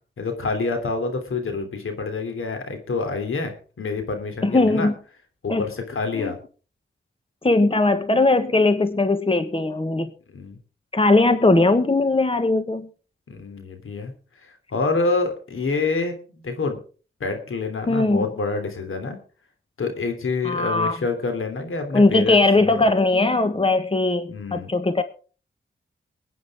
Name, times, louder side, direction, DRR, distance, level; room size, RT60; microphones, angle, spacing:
voice 1, 0.2-4.9 5.4-6.4 10.3-10.6 13.3-14.1 14.4-16.8 17.2-19.2 19.8-22.8 24.3-24.7, left 3 dB, 80° left, 5 dB, 3.1 m, -27 dB
voice 2, 4.4-4.9 5.5-5.6 6.1-6.3 7.4-10.1 10.9-12.9 17.9-18.3 20.4-21.0 21.9-25.0, left 2 dB, 25° left, 10 dB, 1.4 m, -19 dB
23.0 x 9.4 x 3.6 m, 0.38 s
cardioid pair, 55°, 21 cm